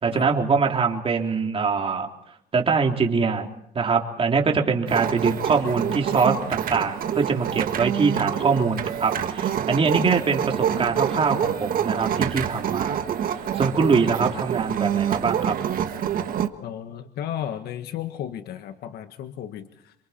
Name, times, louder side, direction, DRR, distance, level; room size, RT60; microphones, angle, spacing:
voice 1, 0.0-2.1 2.5-3.5 3.7-13.0 13.5-15.6, right 5 dB, 35° right, 1 dB, 3.5 m, -23 dB
sound 1, 4.9-16.5, right 9 dB, 55° right, 1.6 m, -26 dB
voice 2, 16.6-19.9, left 10 dB, 70° left, 8 dB, 1.5 m, -34 dB
28.0 x 24.5 x 4.4 m, 0.74 s
cardioid pair, 110°, 17 cm